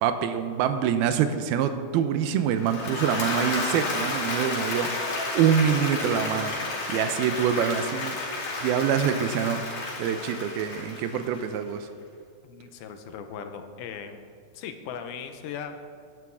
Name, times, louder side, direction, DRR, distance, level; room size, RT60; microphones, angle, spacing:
voice 1, 0.0-4.9 5.3-6.6 6.9-8.2 8.6-9.6 10.0-11.9, right 8 dB, 85° right, 9 dB, 2.6 m, -25 dB
Applause / Crowd, 2.5-11.6, left 3 dB, 60° left, 3.9 m, -31 dB
voice 2, 12.4-14.2 14.5-15.7, left 7 dB, 90° left, 7 dB, 2.7 m, -38 dB
18.5 x 11.0 x 3.6 m, 2.3 s
omnidirectional pair, 4.3 m